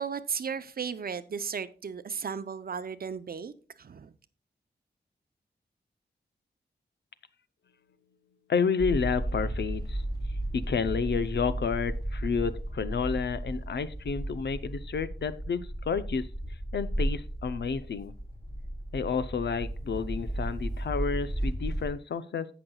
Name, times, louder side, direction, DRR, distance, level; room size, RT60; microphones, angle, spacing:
voice 1, 0.0-3.5 3.8-4.1, right 6 dB, 55° right, 0.6 m, -35 dB
voice 2, 8.5-10.0 10.5-16.3 16.7-18.1 18.9-22.5, left 5 dB, 75° left, 0.7 m, -30 dB
sound 1, 8.8-21.9, right 1 dB, 20° left, 3.6 m, -34 dB
16.5 x 6.0 x 2.3 m
wide cardioid pair, 120°, 18 cm